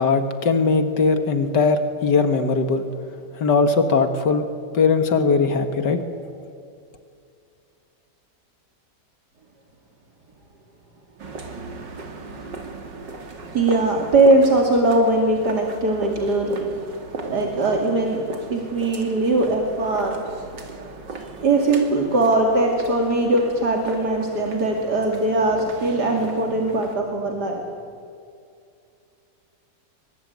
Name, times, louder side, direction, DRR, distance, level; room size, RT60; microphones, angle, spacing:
voice 1, 0.0-2.9 3.4-4.4 4.7-6.0, left 4 dB, 75° left, 8 dB, 2.1 m, -19 dB
sound 1, 11.2-27.0, right 3 dB, 85° right, 3.3 m, -37 dB
voice 2, 13.5-16.7 17.2-18.2 18.5-20.2 21.4-27.6, right 2 dB, 65° right, 1 dB, 3.1 m, -20 dB
26.0 x 22.5 x 9.4 m, 2.4 s
omnidirectional pair, 1.9 m